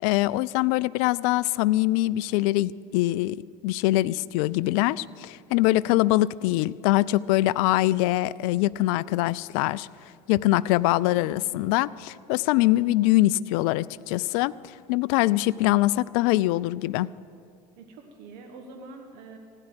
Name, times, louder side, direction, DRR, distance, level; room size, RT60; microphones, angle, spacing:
voice 1, 0.0-9.9 10.3-14.5 14.9-17.1, left 17 dB, 60° left, 19 dB, 0.4 m, -23 dB
voice 2, 11.2-11.7 17.8-19.4, right 3 dB, 60° right, 4 dB, 1.4 m, -45 dB
15.5 x 9.9 x 7.9 m, 2.3 s
hypercardioid pair, 75°, 21 cm